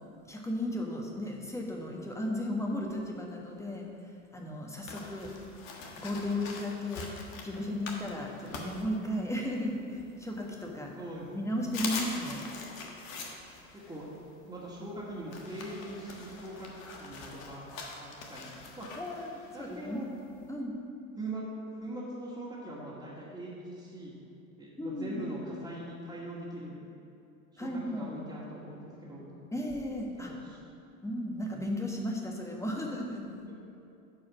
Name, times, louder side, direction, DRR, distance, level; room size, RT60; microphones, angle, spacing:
voice 1, 0.3-5.3 6.0-7.0 7.4-10.9 11.3-12.5 19.0-20.1 20.5-20.7 24.8-25.2 27.6-28.3 29.5-30.3 31.0-33.2, left 1 dB, 5° left, 0 dB, 1.5 m, -35 dB
sound 1, 4.9-9.5 10.0-10.9 11.3-11.4 11.6-20.5, left 4 dB, 70° left, 1.5 m, -43 dB
voice 2, 11.0-11.5 13.7-14.0 14.5-16.7 17.0-17.6 18.0-18.5 18.8-18.9 19.5-20.1 21.2-21.5 21.8-24.1 24.6-26.8 27.5-29.2 30.3-30.6 33.5-33.6, right 1 dB, 10° right, -10 dB, 2.2 m, -41 dB
10.5 x 4.8 x 5.9 m, 2.7 s
figure-of-eight pair, 75°, 42 cm